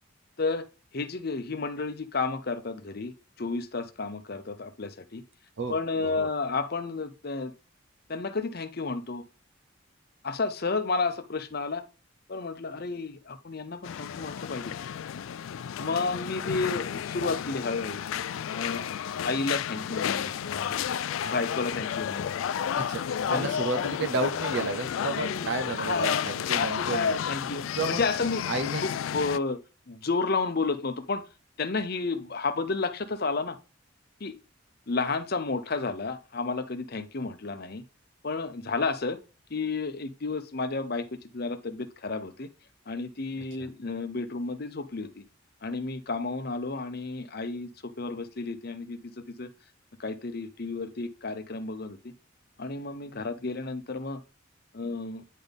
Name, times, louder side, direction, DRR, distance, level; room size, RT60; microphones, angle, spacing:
voice 1, 0.4-0.7 0.9-5.2 5.7-7.5 8.1-9.2 10.2-11.8 12.3-14.7 15.8-18.0 18.5-18.8 19.2-20.8 21.2-22.3 23.2-23.5 25.2-26.2 26.5-28.4 28.8-29.6 29.9-31.2 31.6-33.6 34.2-34.3 34.9-37.8 38.2-39.2 39.5-41.1 41.3-42.5 42.9-45.2 45.6-49.0 49.4-49.5 50.0-52.1 52.6-54.2 54.7-55.2, left 3 dB, 50° left, 0.7 m, -31 dB
voice 2, 5.6-6.3 22.8-27.2 27.7-28.0 28.5-28.8 43.6-43.7, right 3 dB, 65° right, 0.8 m, -32 dB
sound 1, 13.8-29.4, left 9 dB, 75° left, 0.3 m, -32 dB
9.2 x 4.1 x 3.5 m
head